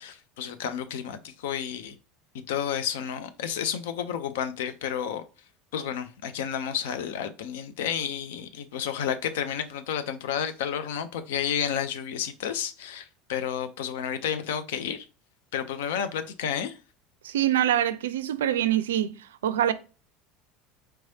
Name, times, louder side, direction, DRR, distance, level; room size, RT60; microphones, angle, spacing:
voice 1, 0.0-2.0 2.3-5.2 5.7-15.1 15.5-16.7, left 8 dB, 70° left, 0.5 m, -31 dB
voice 2, 17.2-19.1 19.4-19.7, right 11 dB, 75° right, 0.4 m, -24 dB
4.5 x 3.1 x 2.7 m
figure-of-eight pair, 75°, 0 cm